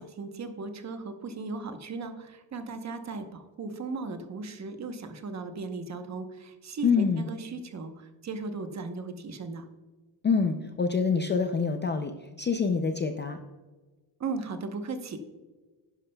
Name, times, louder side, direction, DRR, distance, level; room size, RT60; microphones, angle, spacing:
voice 1, 0.0-9.6 14.2-15.2, right 3 dB, 35° right, 7 dB, 0.9 m, -37 dB
voice 2, 6.8-7.3 10.2-13.4, left 5 dB, 25° left, 6 dB, 0.4 m, -26 dB
11.0 x 10.5 x 2.2 m, 1.3 s
cardioid pair, 165°, 49 cm